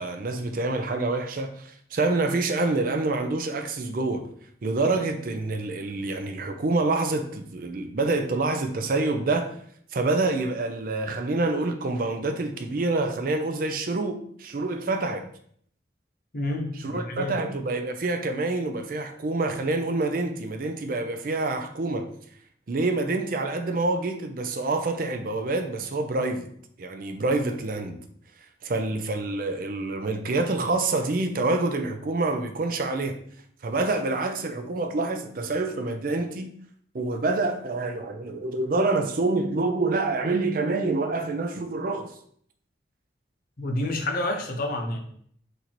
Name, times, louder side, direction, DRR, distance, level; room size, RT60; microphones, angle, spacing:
voice 1, 0.0-4.3 4.6-9.6 9.9-15.3 16.8-22.1 22.7-26.5 26.8-28.0 28.6-33.2 33.6-36.5 36.9-42.1, right 2 dB, 50° right, 0.5 m, -27 dB
voice 2, 16.3-17.3 43.6-45.0, left 1 dB, 50° left, 0.7 m, -29 dB
4.4 x 2.6 x 4.2 m
head